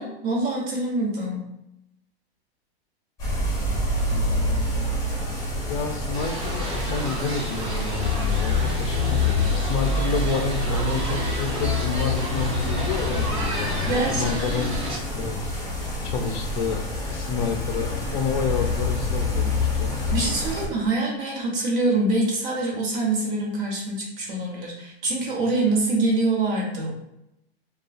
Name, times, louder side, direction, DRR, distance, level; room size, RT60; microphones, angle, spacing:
voice 1, 0.0-1.4 13.9-14.6 20.1-26.9, right 2 dB, 55° right, -2 dB, 1.1 m, -25 dB
sound 1, 3.2-20.7, left 2 dB, 10° left, 0.8 m, -26 dB
voice 2, 4.1-4.9 5.7-14.8 15.1-15.4 16.0-19.9, left 5 dB, 50° left, 4 dB, 0.4 m, -29 dB
sound 2, 6.1-15.0, right 1 dB, 25° right, 0.8 m, -32 dB
2.4 x 2.2 x 2.4 m, 0.83 s
hypercardioid pair, 140°, 32 cm